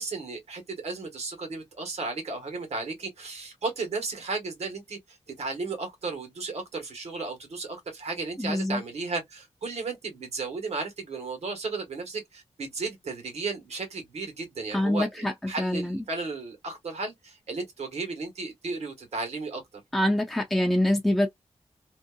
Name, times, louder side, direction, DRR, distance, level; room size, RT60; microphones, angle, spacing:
voice 1, 0.0-19.6, right 3 dB, 75° right, 1.3 m, -34 dB
voice 2, 8.4-8.8 14.7-15.3 15.6-16.0 19.9-21.3, left 1 dB, ahead, 0.4 m, -25 dB
2.7 x 2.3 x 2.4 m
wide cardioid pair, 165°, 11 cm